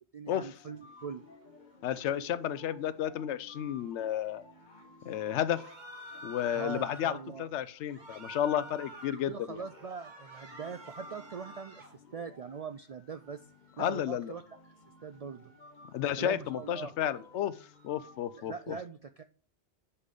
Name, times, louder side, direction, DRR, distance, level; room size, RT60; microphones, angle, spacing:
voice 1, 0.1-1.2 6.5-7.5 9.2-13.4 13.8-14.6 15.0-15.5 16.2-16.9 18.3-19.2, right 5 dB, 70° right, 9 dB, 0.3 m, -42 dB
sound 1, 0.6-18.4, left 3 dB, 45° left, 1.4 m, -56 dB
voice 2, 1.8-4.4 5.0-5.6 6.2-9.6 13.8-14.3 15.9-17.5 17.8-18.8, left 10 dB, 90° left, 16 dB, 0.9 m, -32 dB
sound 2, 5.5-7.2 7.9-9.2 9.6-11.9, right 1 dB, 45° right, 1.4 m, -48 dB
5.6 x 5.1 x 6.6 m, 0.41 s
omnidirectional pair, 1.2 m